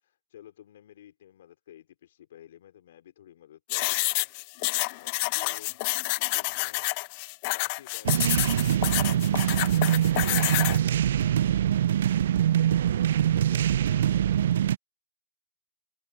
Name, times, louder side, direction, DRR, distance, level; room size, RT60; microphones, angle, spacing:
voice 1, 0.0-4.3 4.9-5.8 6.2-6.9 7.5-9.7 13.5-14.1, left 11 dB, 60° left, 3.1 m, -53 dB
sound 1, 3.7-10.8, left 26 dB, 40° left, 0.6 m, -28 dB
sound 2, 8.1-14.8, right 10 dB, 65° right, 0.4 m, -24 dB
open air
hypercardioid pair, 130°, 0 cm